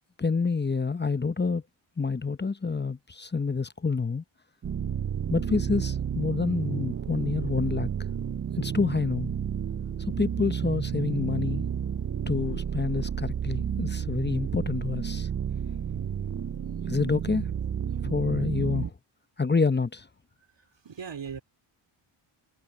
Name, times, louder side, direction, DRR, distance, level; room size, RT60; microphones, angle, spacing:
voice 1, 0.2-1.6 2.0-4.2 5.3-7.9 8.6-9.3 10.2-11.7 12.3-15.3 16.9-17.5 18.0-18.9 19.4-20.1, left 4 dB, 20° left, 0.8 m, -28 dB
sound 1, 4.6-18.9, right 8 dB, 35° right, 0.5 m, -31 dB
voice 2, 20.5-21.4, right 6 dB, 60° right, 3.0 m, -39 dB
cardioid pair, 60°, 50 cm